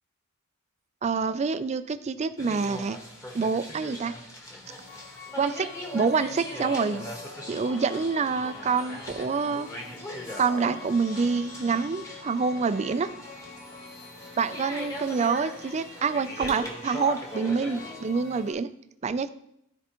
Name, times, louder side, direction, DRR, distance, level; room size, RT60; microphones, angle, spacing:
voice 1, 1.0-3.0 3.3-4.1 5.4-7.1 7.5-9.7 10.4-13.1 14.4-18.7 19.0-19.3, right 5 dB, 30° right, 12 dB, 0.3 m, -27 dB
sound 1, 2.4-18.0, left 1 dB, 15° left, 1.2 m, -40 dB
sound 2, 4.6-18.5, left 4 dB, 65° left, 3.1 m, -46 dB
12.5 x 4.5 x 2.9 m, 0.77 s
head